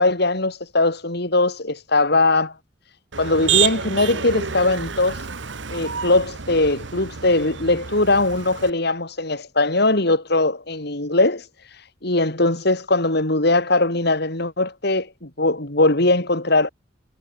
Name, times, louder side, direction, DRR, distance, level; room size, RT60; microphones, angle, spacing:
voice 1, 0.0-2.5 3.2-5.2 5.7-11.4 12.0-16.7, left 2 dB, 60° left, 3.7 m, -20 dB
Motor vehicle (road), 3.1-8.7, right 8 dB, 70° right, 1.3 m, -28 dB
head